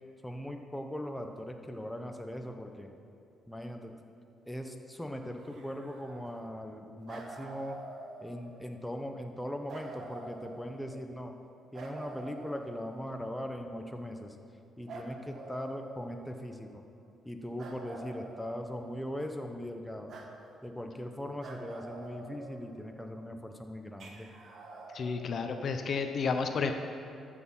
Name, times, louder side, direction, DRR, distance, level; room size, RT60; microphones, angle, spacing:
voice 1, 0.2-2.9 3.5-3.9 4.5-7.8 8.2-11.3 11.7-14.4 14.8-16.8 17.2-20.1 20.6-24.3, equal, 5° left, 4 dB, 0.9 m, -40 dB
sound 1, 5.4-6.7 7.1-8.7 9.7-11.1 11.7-13.4 14.9-16.5 17.6-19.2 20.1-20.3 21.4-23.0 24.0-25.2, right 2 dB, 60° right, 1.5 m, -47 dB
voice 2, 24.9-26.7, left 5 dB, 55° left, 6 dB, 0.8 m, -31 dB
13.0 x 6.5 x 5.6 m, 2.7 s
cardioid pair, 90°, 0 cm